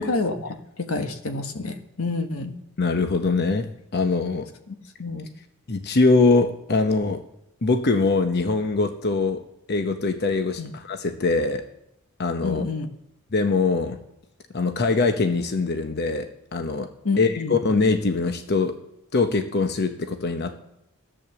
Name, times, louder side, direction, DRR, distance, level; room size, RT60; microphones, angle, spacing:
voice 1, 0.0-2.5 4.7-5.3 10.6-10.7 12.4-12.9 17.0-17.5, left 3 dB, 85° left, 7 dB, 1.4 m, -28 dB
voice 2, 2.8-3.7 3.9-4.5 5.7-7.2 7.6-9.4 9.7-11.6 12.2-12.6 13.3-14.0 14.5-16.9 17.2-18.7 19.1-20.6, left 3 dB, 50° left, 7 dB, 0.9 m, -22 dB
14.0 x 8.7 x 7.0 m, 0.84 s
head